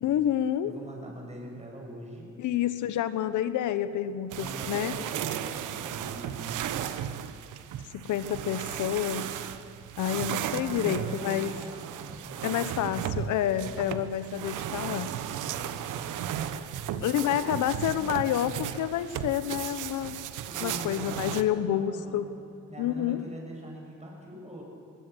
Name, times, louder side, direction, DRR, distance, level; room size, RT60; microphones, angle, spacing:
voice 1, 0.0-0.7 2.4-4.9 8.0-9.3 10.0-11.6 12.4-15.1 17.0-20.1 20.6-22.3 22.8-23.2, left 10 dB, 80° left, 12 dB, 1.2 m, -29 dB
voice 2, 0.6-2.3 4.4-6.6 10.5-14.0 15.4-16.0 17.1-18.1 20.5-22.4 22.7-24.6, right 1 dB, 20° right, -1 dB, 6.7 m, -43 dB
sound 1, 4.3-21.4, right 10 dB, 85° right, 1.1 m, -35 dB
21.5 x 18.5 x 8.1 m, 2.7 s
cardioid pair, 90°, 30 cm